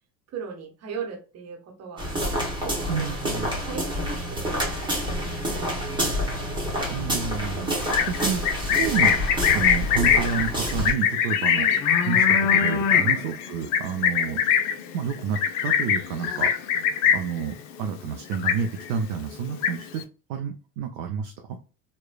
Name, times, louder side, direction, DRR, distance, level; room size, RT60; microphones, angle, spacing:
voice 1, 0.3-2.4 2.6-6.1 11.5-11.8 13.0-13.3, right 6 dB, 30° right, 2 dB, 1.1 m, -39 dB
sound 1, 2.0-10.9, equal, 10° right, 1.2 m, -28 dB
voice 2, 2.9-3.5 6.9-9.2 9.5-11.7 12.0-14.4 14.9-20.0 20.3-21.6, right 7 dB, 50° right, 4 dB, 0.6 m, -30 dB
Livestock farm animals working animals, 7.8-17.4 17.7-18.1 18.3-19.0 19.3-20.0, left 8 dB, 45° left, 0.5 m, -22 dB
3.1 x 2.2 x 2.2 m, 0.34 s
hypercardioid pair, 75°, 49 cm